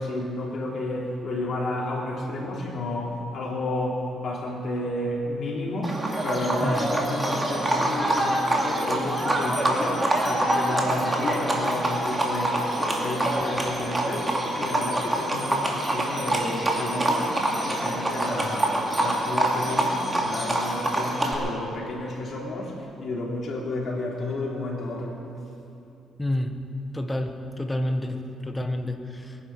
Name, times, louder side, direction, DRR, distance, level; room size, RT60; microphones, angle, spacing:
voice 1, 0.0-6.0 6.2-17.3 17.6-22.7 23.0-25.2, left 1 dB, 55° left, -2 dB, 3.4 m, -31 dB
Livestock farm animals working animals, 5.8-21.3, right 1 dB, 20° right, 2.4 m, -25 dB
voice 2, 26.2-26.5 26.9-29.4, left 1 dB, 15° left, 6 dB, 1.4 m, -29 dB
22.0 x 10.5 x 6.2 m, 2.9 s
cardioid pair, 90°, 0 cm